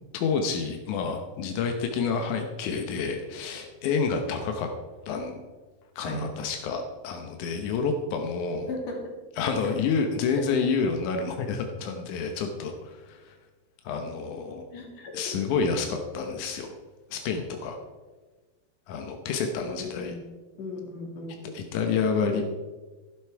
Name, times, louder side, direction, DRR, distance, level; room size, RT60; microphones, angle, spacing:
voice 1, 0.1-4.7 5.1-5.4 6.0-8.7 9.4-13.4 13.8-14.7 15.1-16.7 17.1-17.8 18.9-20.2 21.4-22.4, left 5 dB, 80° left, 4 dB, 1.8 m, -29 dB
voice 2, 8.7-9.0 10.3-10.4 14.7-15.3 19.7-20.3 20.6-21.4 22.2-22.4, left 1 dB, 45° left, 0 dB, 2.9 m, -36 dB
12.0 x 11.0 x 4.6 m, 1.3 s
omnidirectional pair, 4.9 m